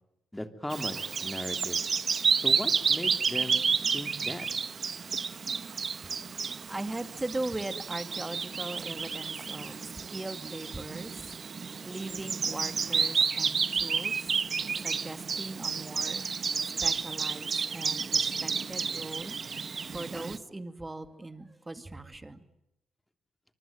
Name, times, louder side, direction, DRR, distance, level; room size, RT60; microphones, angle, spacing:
voice 1, 0.3-1.8 2.4-3.6 3.9-4.5, left 1 dB, 10° left, 3.1 m, -37 dB
Bird vocalization bird call bird song, 0.7-20.4, right 5 dB, 40° right, 1.1 m, -31 dB
voice 2, 5.6-16.5 16.8-19.4 19.9-22.4, right 2 dB, 15° right, 2.4 m, -40 dB
26.0 x 24.5 x 9.2 m
cardioid pair, 90°, 0 cm